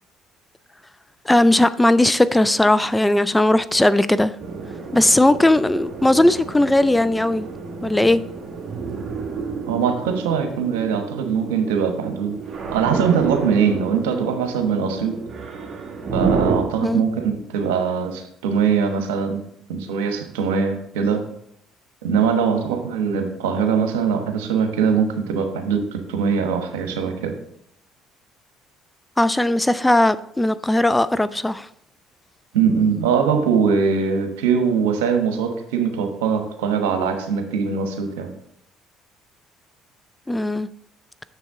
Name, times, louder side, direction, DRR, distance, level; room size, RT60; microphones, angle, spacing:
voice 1, 1.3-4.3 4.9-7.5 7.8-8.2 16.8-17.0 29.2-31.7 40.3-40.7, left 1 dB, 10° left, 0.3 m, -18 dB
sound 1, 4.4-16.6, right 5 dB, 45° right, 1.5 m, -30 dB
voice 2, 9.6-12.4 12.7-15.2 16.1-19.4 19.7-21.2 22.0-27.3 32.5-38.3, right 6 dB, 85° right, 1.0 m, -22 dB
7.0 x 6.7 x 3.6 m
hypercardioid pair, 60°, 0 cm